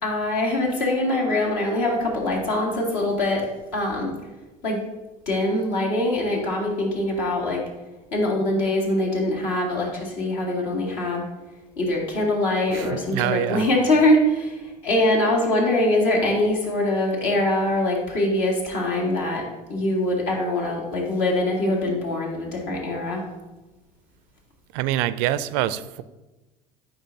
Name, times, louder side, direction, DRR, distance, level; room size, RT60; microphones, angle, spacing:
voice 1, 0.0-3.5 3.7-4.1 4.6-4.8 5.3-7.6 8.1-11.3 11.8-23.2, left 1 dB, 70° left, -2 dB, 2.1 m, -23 dB
voice 2, 12.7-13.7 24.7-26.0, right 13 dB, 65° right, 15 dB, 0.4 m, -25 dB
9.0 x 5.0 x 2.7 m, 1.1 s
hypercardioid pair, 80°, 21 cm